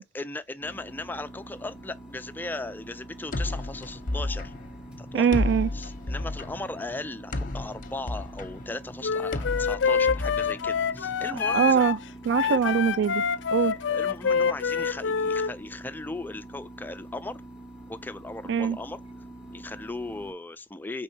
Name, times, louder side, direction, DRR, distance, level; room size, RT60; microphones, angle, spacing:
voice 1, 0.0-4.5 5.0-5.3 5.7-11.9 12.5-12.6 13.6-17.4 17.9-19.0 19.5-21.0, left 2 dB, 10° left, 0.3 m, -37 dB
sound 1, 0.6-20.3, right 1 dB, 5° right, 0.7 m, -45 dB
sound 2, 3.3-11.2, left 2 dB, 50° left, 0.7 m, -33 dB
voice 2, 5.1-5.7 11.5-12.0 12.3-13.2 13.5-13.8 18.5-18.8, right 7 dB, 70° right, 0.3 m, -22 dB
Wind instrument woodwind instrument, 9.0-15.5, left 6 dB, 80° left, 0.4 m, -26 dB
5.3 x 3.6 x 2.7 m
head